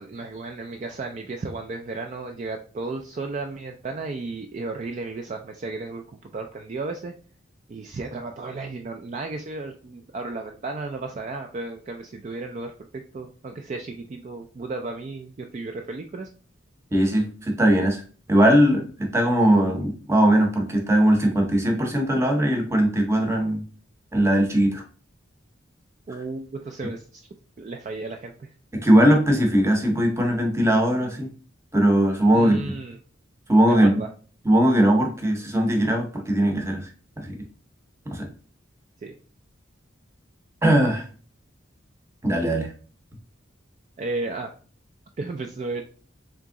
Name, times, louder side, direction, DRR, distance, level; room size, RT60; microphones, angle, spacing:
voice 1, 0.0-7.1 7.7-16.3 26.1-27.2 27.6-28.5 32.3-33.0 33.7-34.1 39.0-39.1 44.0-44.5 45.2-45.8, right 3 dB, 35° right, 4 dB, 0.3 m, -34 dB
voice 2, 16.9-18.0 18.3-23.6 24.1-24.8 28.7-31.3 31.7-32.8 33.5-34.0 34.4-36.9 37.2-37.4 38.1-38.3 40.6-41.0 42.2-42.7, right 1 dB, 15° right, 3 dB, 0.7 m, -20 dB
3.6 x 2.9 x 3.6 m, 0.40 s
head